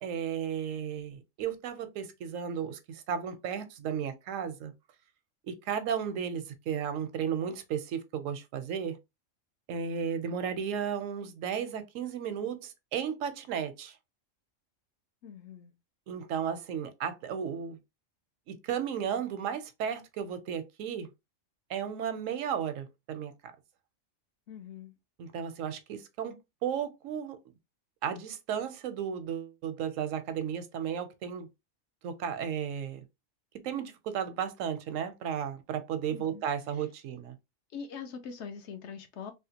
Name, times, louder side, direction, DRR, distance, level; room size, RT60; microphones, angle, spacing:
voice 1, 0.0-4.7 5.5-9.0 9.7-14.0 16.1-17.8 18.5-21.1 21.7-23.5 25.2-27.4 28.0-31.5 32.0-33.0 33.6-37.4, right 8 dB, 85° right, 1.0 m, -34 dB
voice 2, 15.2-15.7 24.5-24.9 36.1-36.4 37.7-39.3, left 6 dB, 65° left, 0.8 m, -43 dB
3.5 x 2.3 x 2.7 m
omnidirectional pair, 1.3 m